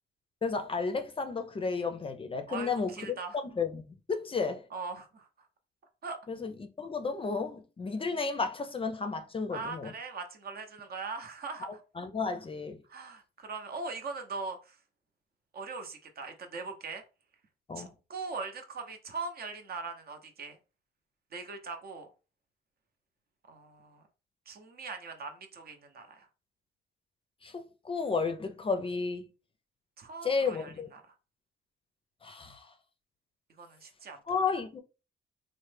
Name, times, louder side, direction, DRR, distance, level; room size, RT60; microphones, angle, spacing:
voice 1, 0.4-3.1 3.4-4.6 6.3-9.9 11.6-12.8 17.7-17.9 27.4-29.3 30.2-30.9 32.2-32.7 34.3-34.8, left 4 dB, 25° left, 0.5 m, -33 dB
voice 2, 2.5-3.4 4.7-5.3 6.0-6.2 9.5-11.8 12.9-14.8 15.5-17.0 17.8-20.6 21.3-22.1 23.5-24.0 24.5-26.3 30.0-31.0 33.6-34.2, right 4 dB, 50° right, 0.7 m, -41 dB
3.1 x 2.1 x 3.2 m
cardioid pair, 90°, 20 cm